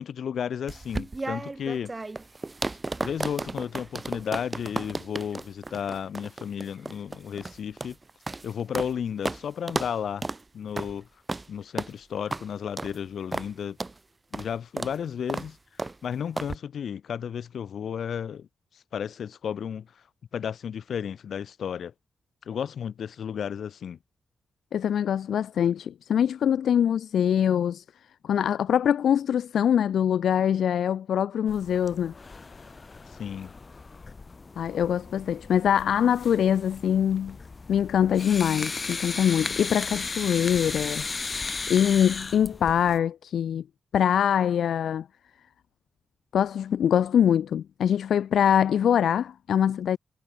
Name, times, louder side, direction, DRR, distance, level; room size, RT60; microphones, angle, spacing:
voice 1, 0.0-1.9 3.0-8.0 8.4-10.3 10.5-11.1 11.5-13.8 14.3-15.6 16.0-18.5 18.9-19.9 20.3-21.9 22.5-24.0 33.2-33.5, left 8 dB, 70° left, 1.5 m, -33 dB
sound 1, 0.7-8.9 9.2-9.4 9.7-9.9 10.2-10.4 10.8-10.9 11.3-11.5 11.8-11.9 12.3-12.4 12.8-13.0 13.3-13.5 13.8-13.9 14.3-14.5 14.8-15.0 15.3-15.5 15.8-16.0 16.4-16.6, right 3 dB, 20° right, 1.6 m, -33 dB
voice 2, 24.7-27.8 28.2-32.1 34.6-37.4 37.7-41.1 41.4-43.6 43.9-45.1 46.3-50.0, left 9 dB, 85° left, 0.4 m, -23 dB
sound 2, 31.5-43.0, left 4 dB, 30° left, 2.2 m, -36 dB
wide cardioid pair, 140°, 0 cm